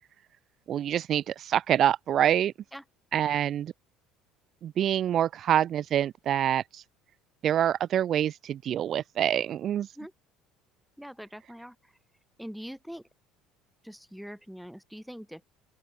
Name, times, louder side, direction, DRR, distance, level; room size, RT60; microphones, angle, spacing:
voice 1, 0.7-2.5 3.1-3.7 4.6-6.8 7.4-9.9, right 10 dB, 45° right, 1.3 m, -26 dB
voice 2, 11.0-11.9 12.4-13.1 13.8-15.4, equal, ahead, 5.8 m, -43 dB
open air
figure-of-eight pair, 60°, 0 cm